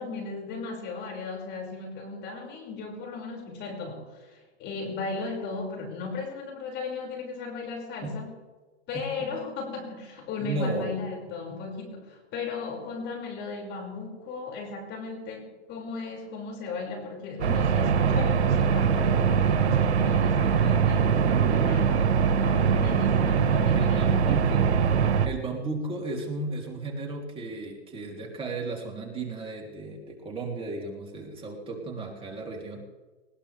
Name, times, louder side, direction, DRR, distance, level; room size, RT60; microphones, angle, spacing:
voice 1, 0.0-8.3 8.9-24.4, left 4 dB, 30° left, 1 dB, 5.8 m, -36 dB
voice 2, 10.4-10.9 11.5-11.6 23.7-24.7 25.2-32.8, right 2 dB, 15° right, 0 dB, 3.2 m, -34 dB
sound 1, 17.4-25.3, right 6 dB, 80° right, 1.6 m, -22 dB
20.0 x 20.0 x 3.4 m, 1.3 s
hypercardioid pair, 135°, 33 cm